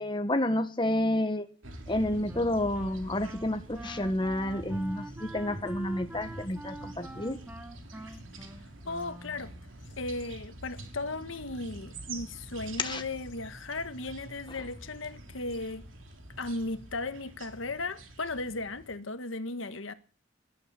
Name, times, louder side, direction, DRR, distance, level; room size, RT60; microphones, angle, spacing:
voice 1, 0.0-1.4 1.9-7.4 12.8-13.0, left 1 dB, 25° left, 1.4 m, -30 dB
sound 1, 1.6-19.0, right 2 dB, 85° right, 2.9 m, -46 dB
Wind instrument woodwind instrument, 2.3-9.7, right 1 dB, 10° right, 1.2 m, -45 dB
sound 2, 4.2-6.6 6.9-13.6 13.9-14.3 14.6-14.9, equal, 70° left, 4.5 m, -50 dB
voice 2, 8.8-9.5 10.0-15.8 16.4-19.9, left 2 dB, 85° left, 1.4 m, -36 dB
18.5 x 11.5 x 6.9 m
head